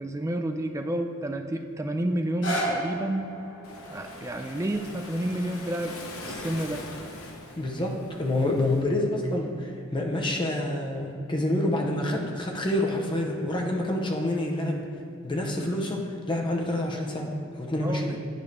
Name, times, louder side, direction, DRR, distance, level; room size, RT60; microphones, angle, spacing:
voice 1, 0.0-3.3 3.9-6.0 6.2-6.8 17.8-18.2, right 1 dB, 15° right, 6 dB, 0.3 m, -30 dB
sound 1, 2.2-8.2 8.9-9.0, right 1 dB, 55° left, 1.2 m, -36 dB
Waves surf, 3.6-8.8, left 2 dB, 80° left, 0.9 m, -42 dB
voice 2, 7.6-14.9 15.2-18.2, left 1 dB, 20° left, 0 dB, 0.7 m, -27 dB
10.5 x 4.8 x 3.3 m, 2.5 s
head